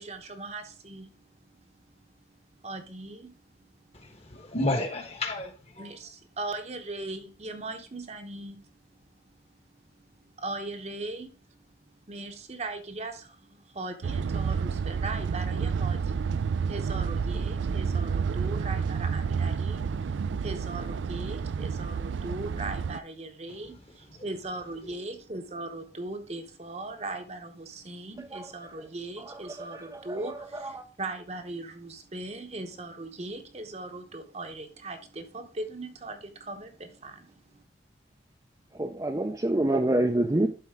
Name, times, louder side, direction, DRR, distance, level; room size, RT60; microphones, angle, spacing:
voice 1, 0.0-2.1 2.6-4.0 5.8-9.6 10.0-11.7 12.1-37.6, right 2 dB, 35° right, 0.9 m, -39 dB
voice 2, 3.9-5.9 24.1-24.2, left 2 dB, 35° left, 1.2 m, -32 dB
sound 1, 14.0-23.0, right 6 dB, 90° right, 0.4 m, -30 dB
voice 3, 29.2-30.8 38.8-40.5, right 1 dB, 20° right, 0.5 m, -28 dB
11.5 x 4.2 x 3.6 m
head